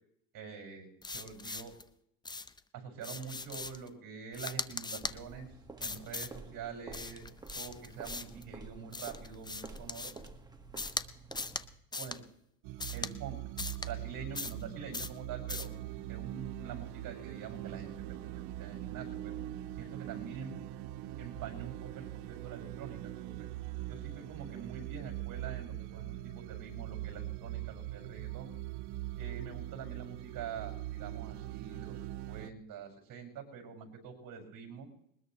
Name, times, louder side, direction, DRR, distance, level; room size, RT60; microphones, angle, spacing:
voice 1, 0.3-1.7 2.7-7.2 7.6-10.1 11.9-12.2 12.9-13.4 13.8-15.7 16.1-18.3 18.6-19.4 19.7-20.5 21.2-23.5 23.8-28.5 29.1-34.9, right 6 dB, 50° right, 2 dB, 5.6 m, -45 dB
sound 1, 1.0-1.8 2.2-2.6 3.0-3.9 4.3-5.2 5.8-6.4 6.9-8.4 8.9-10.3 10.8-11.0 11.3-11.6 11.9-12.2 12.8-13.1 13.6-13.9 14.3-14.6 14.9-15.2 15.5-15.7, left 3 dB, 10° left, 0.6 m, -40 dB
sound 2, 5.0-11.8, right 3 dB, 10° right, 1.6 m, -50 dB
sound 3, 12.6-32.5, right 14 dB, 75° right, 1.0 m, -42 dB
21.0 x 20.0 x 3.1 m, 0.74 s
cardioid pair, 120°, 40 cm